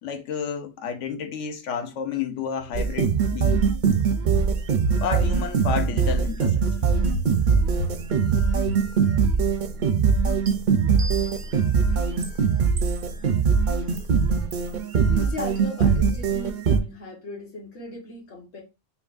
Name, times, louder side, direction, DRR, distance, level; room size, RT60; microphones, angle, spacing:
voice 1, 0.0-3.7 4.8-6.6, left 6 dB, 80° left, 1.0 m, -30 dB
sound 1, 2.7-16.8, right 6 dB, 55° right, 0.5 m, -22 dB
sound 2, 10.5-10.6 11.0-11.6 12.2-12.3 12.8-13.3 14.0-14.1 14.5-14.7, right 3 dB, 90° right, 1.0 m, -38 dB
voice 2, 15.1-18.6, left 2 dB, 65° left, 1.5 m, -37 dB
5.5 x 2.3 x 2.4 m
omnidirectional pair, 1.3 m